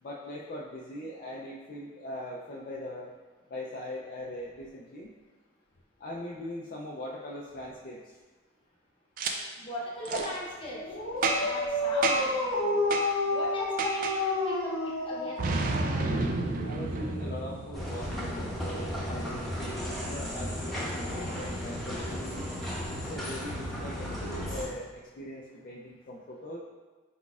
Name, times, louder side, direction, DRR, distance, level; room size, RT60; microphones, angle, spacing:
voice 1, 0.0-3.1 3.5-5.1 6.0-8.2 16.6-22.5 22.9-26.6, left 1 dB, 50° left, -4 dB, 0.4 m, -41 dB
Boom, 9.2-9.3 10.1-10.3 11.2-11.6 12.0-12.4 12.9-13.1 13.8-14.2 15.4-18.1, right 3 dB, 45° right, 0.3 m, -30 dB
voice 2, 9.6-10.8 11.4-12.8 13.2-15.4, left 1 dB, 25° left, -5 dB, 0.8 m, -39 dB
Dog, 10.7-16.4, left 2 dB, 85° left, 0.7 m, -30 dB
sound 1, 17.7-24.6, equal, ahead, 0.9 m, -35 dB
4.4 x 4.0 x 2.3 m, 1.3 s
head